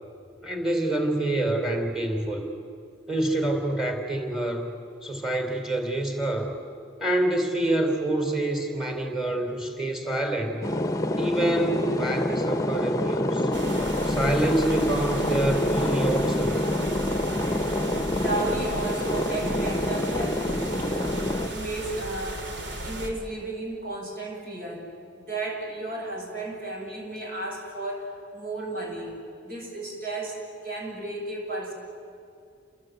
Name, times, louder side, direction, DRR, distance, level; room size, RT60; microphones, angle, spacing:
voice 1, 0.4-2.5 3.1-4.7 5.0-6.5 7.0-10.6 11.2-13.5 14.0-16.6, right 1 dB, 5° right, 4 dB, 3.8 m, -26 dB
sound 1, 10.6-21.5, left 1 dB, 20° left, 1.1 m, -27 dB
sound 2, 13.5-23.1, right 1 dB, 75° right, 3.4 m, -35 dB
voice 2, 17.8-22.5 22.8-31.7, right 2 dB, 50° right, 1 dB, 7.4 m, -34 dB
29.5 x 21.0 x 9.5 m, 2.4 s
head